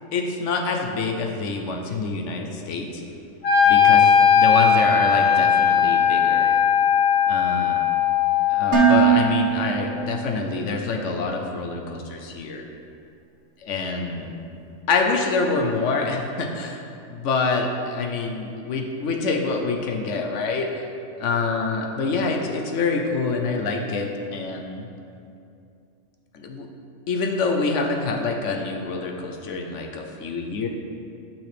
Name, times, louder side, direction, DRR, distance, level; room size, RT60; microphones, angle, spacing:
voice 1, 0.1-3.0 3.6-6.6 7.3-7.8 8.5-12.6 13.6-14.3 14.9-16.8 17.1-20.9 21.2-24.9 26.3-26.7 27.1-30.7, left 4 dB, 75° left, 2 dB, 1.0 m, -26 dB
Wind instrument woodwind instrument, 3.4-9.5, left 7 dB, 55° left, 1.7 m, -18 dB
Dishes pots and pans, 8.7-10.8, right 8 dB, 60° right, 1.4 m, -21 dB
9.1 x 5.9 x 3.3 m, 2.6 s
omnidirectional pair, 1.3 m